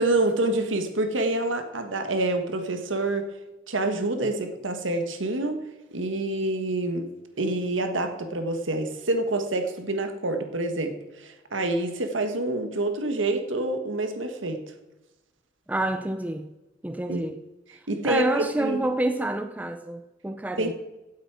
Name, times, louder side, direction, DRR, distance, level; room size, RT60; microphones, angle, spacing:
voice 1, 0.0-3.3 3.7-5.6 5.9-7.1 7.4-14.6 17.1-17.2 17.7-18.9 20.6-20.7, right 2 dB, 85° right, 1.5 m, -27 dB
voice 2, 15.7-16.5 16.8-17.4 18.0-20.7, right 1 dB, 10° right, 0.4 m, -28 dB
16.5 x 8.3 x 4.8 m
head